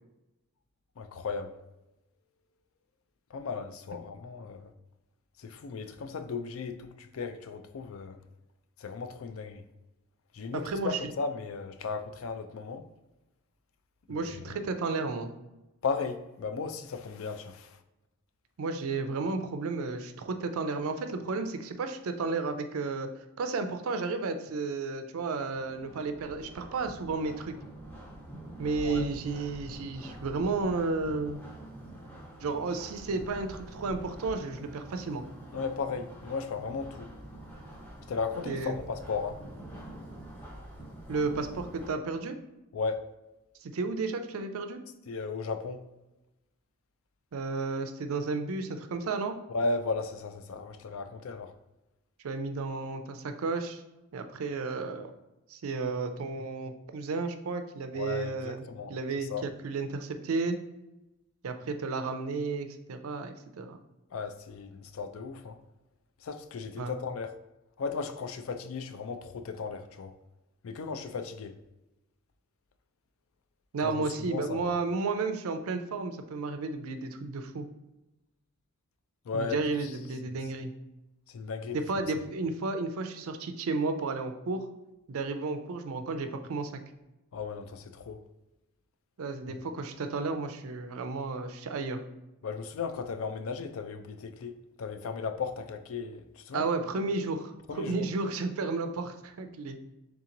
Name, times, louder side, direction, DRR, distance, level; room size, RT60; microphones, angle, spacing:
voice 1, 1.0-1.6 3.3-4.7 5.4-8.2 8.8-9.6 10.3-12.8 14.1-14.4 15.8-17.8 28.8-29.1 35.5-37.1 38.1-39.4 42.7-43.1 45.1-45.8 49.5-51.5 57.9-58.9 59.3-59.4 64.1-65.6 66.2-67.3 67.8-70.1 70.6-71.6 73.8-73.9 74.3-74.7 79.3-79.9 81.3-81.8 87.3-88.2 89.5-89.6 92.4-96.6 97.7-98.1, left 4 dB, 65° left, 0.4 m, -35 dB
voice 2, 10.5-11.0 14.1-15.3 18.6-23.1 23.4-27.5 28.6-31.4 32.4-35.2 38.5-38.8 41.1-42.3 43.6-44.8 47.3-49.4 52.2-53.8 54.1-55.1 55.5-60.6 61.4-63.8 66.8-66.9 73.7-77.7 79.3-80.7 81.7-84.7 85.1-86.7 89.2-92.0 96.5-99.8, right 3 dB, 70° right, 0.4 m, -32 dB
sound 1, 25.2-41.9, right 1 dB, 10° left, 0.6 m, -46 dB
3.6 x 2.9 x 3.7 m
head